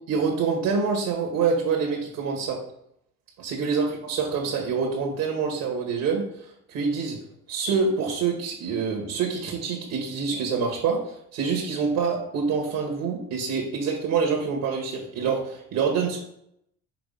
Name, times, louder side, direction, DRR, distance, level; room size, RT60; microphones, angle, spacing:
voice 1, 0.1-2.6 3.4-6.2 6.7-7.2 7.5-16.2, right 5 dB, 90° right, -1 dB, 1.6 m, -26 dB
5.9 x 3.3 x 5.4 m, 0.75 s
cardioid pair, 120°, 33 cm